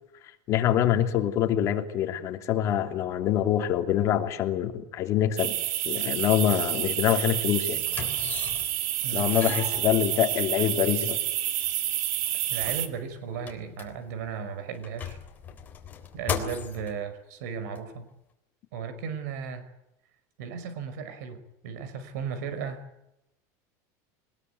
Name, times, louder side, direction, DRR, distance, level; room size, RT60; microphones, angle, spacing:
voice 1, 0.5-5.5 5.8-7.8 9.1-11.2, left 11 dB, 35° left, 5 dB, 3.0 m, -25 dB
sound 1, 5.4-12.9, right 13 dB, 60° right, 2.7 m, -29 dB
sound 2, 7.8-8.9 9.2-10.5 11.3-11.4 11.6-11.7 12.2-14.3 14.7-16.9 17.7-17.8, left 7 dB, 20° left, 3.6 m, -37 dB
voice 2, 9.0-9.3 12.5-15.2 16.1-18.1 18.7-19.7 20.4-22.8, right 6 dB, 80° right, 11 dB, 5.5 m, -35 dB
23.5 x 21.0 x 9.5 m, 0.87 s
cardioid pair, 175°, 9 cm